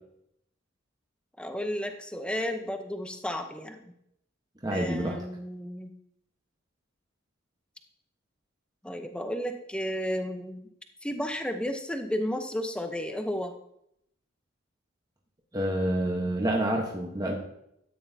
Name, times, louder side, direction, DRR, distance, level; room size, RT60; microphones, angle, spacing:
voice 1, 1.4-3.9 4.7-5.9 8.8-10.7 11.0-13.5, equal, 5° left, 6 dB, 0.8 m, -33 dB
voice 2, 4.6-5.2 15.5-17.4, right 1 dB, 20° right, 0 dB, 1.2 m, -28 dB
13.0 x 9.4 x 2.8 m, 0.74 s
head